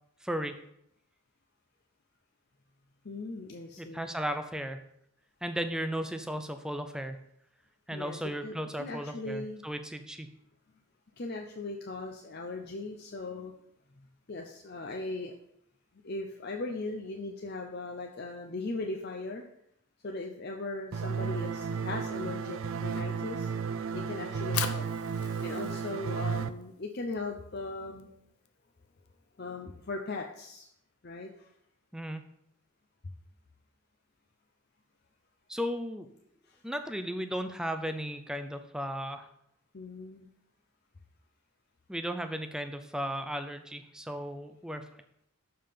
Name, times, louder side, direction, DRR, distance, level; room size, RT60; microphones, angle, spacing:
voice 1, 0.2-0.6 3.8-4.8 5.4-7.2 7.9-10.3 31.9-32.2 35.5-36.1 36.6-39.3 41.9-44.9, equal, 5° right, 8 dB, 0.4 m, -35 dB
voice 2, 3.0-4.0 7.9-8.2 8.4-9.6 11.2-13.5 14.0-15.3 16.0-19.4 20.0-23.5 23.9-24.9 25.4-28.1 29.4-30.7 31.0-31.5 36.5-36.6 39.7-40.3, left 3 dB, 45° left, 2 dB, 0.6 m, -38 dB
sound 1, 20.9-26.5, right 6 dB, 70° right, 0.4 m, -33 dB
Fire, 24.2-30.5, left 8 dB, 85° left, 0.7 m, -42 dB
6.7 x 5.5 x 5.6 m, 0.75 s
head